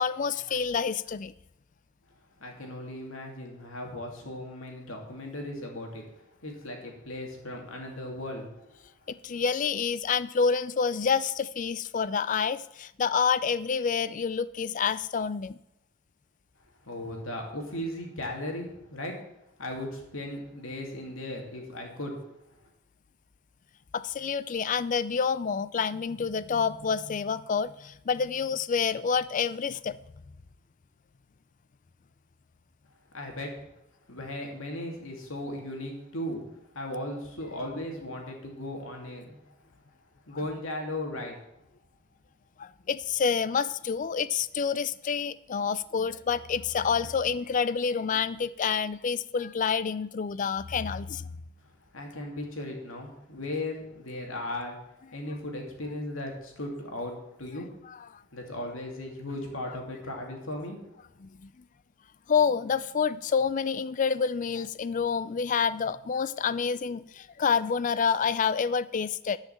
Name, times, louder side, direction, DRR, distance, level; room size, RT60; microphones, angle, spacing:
voice 1, 0.0-1.3 9.1-15.6 23.9-30.0 42.6-51.3 57.9-58.0 61.2-61.5 62.3-69.4, left 6 dB, 35° left, 17 dB, 0.4 m, -28 dB
voice 2, 2.4-8.9 16.8-19.1 19.6-22.2 33.1-33.5 34.1-36.4 36.7-39.4 40.3-41.4 51.9-54.8 55.1-57.1 57.4-57.7 58.3-60.8, left 1 dB, 70° left, 1 dB, 2.6 m, -37 dB
11.0 x 5.8 x 7.2 m, 0.85 s
head